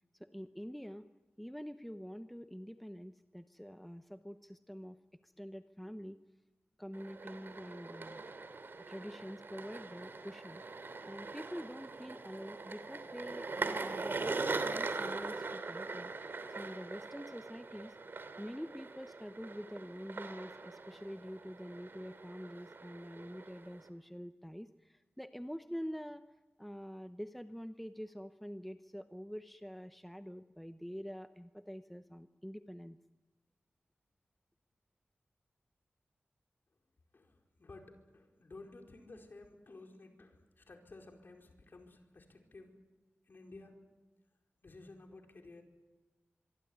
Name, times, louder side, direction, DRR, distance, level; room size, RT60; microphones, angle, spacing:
voice 1, 0.2-1.1 1.4-6.2 6.8-8.2 8.9-10.6 11.0-16.1 16.5-18.0 18.4-26.2 26.6-33.0, equal, ahead, 10 dB, 0.8 m, -46 dB
sound 1, 6.9-23.9, right 3 dB, 55° right, 2.7 m, -42 dB
voice 2, 37.6-42.7 43.3-43.7 44.6-45.6, left 2 dB, 50° left, 3 dB, 4.7 m, -54 dB
25.0 x 23.5 x 9.6 m, 1.1 s
wide cardioid pair, 95°, 4 cm